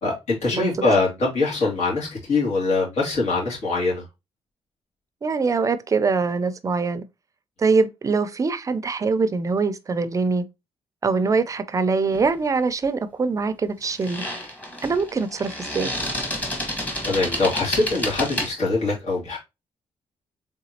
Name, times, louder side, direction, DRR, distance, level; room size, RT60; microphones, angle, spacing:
voice 1, 0.0-4.0 17.0-19.4, left 3 dB, 85° left, 2.4 m, -23 dB
voice 2, 5.2-7.0 7.6-10.4 11.0-14.2 14.8-15.9, right 4 dB, 30° right, 0.4 m, -23 dB
sound 1, 12.1-12.4 13.8-18.5, equal, 15° left, 1.2 m, -30 dB
3.9 x 3.5 x 2.8 m
cardioid pair, 125°, 11 cm